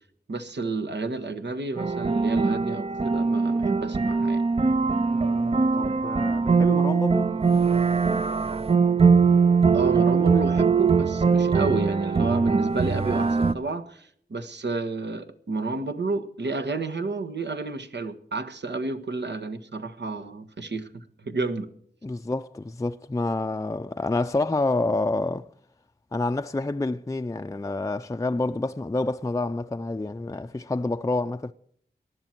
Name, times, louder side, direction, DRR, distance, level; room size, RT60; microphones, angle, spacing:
voice 1, 0.3-4.4 9.7-21.7, right 3 dB, 80° right, 1.5 m, -31 dB
sound 1, 1.8-13.5, right 5 dB, 35° right, 0.5 m, -22 dB
voice 2, 5.1-7.3 22.0-25.5 26.1-31.5, left 2 dB, 20° left, 0.5 m, -28 dB
19.5 x 12.0 x 4.5 m
wide cardioid pair, 80°, 18 cm